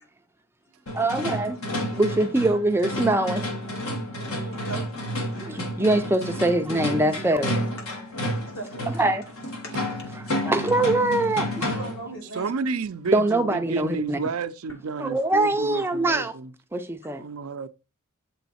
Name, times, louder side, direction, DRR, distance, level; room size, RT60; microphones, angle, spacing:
sound 1, 0.9-12.1, equal, 80° left, 1.8 m, -30 dB
voice 1, 0.9-1.6 1.9-3.5 5.3-7.6 9.0-9.3 10.2-11.8 13.1-14.2 15.0-16.3 16.7-17.3, right 2 dB, 10° right, 0.4 m, -23 dB
voice 2, 4.4-5.5 7.8-8.0 8.4-9.1 9.6-10.1 11.6-12.6, right 2 dB, 65° left, 2.1 m, -40 dB
voice 3, 12.3-16.5 17.2-17.7, right 4 dB, 85° right, 0.5 m, -31 dB
7.0 x 3.9 x 4.2 m
head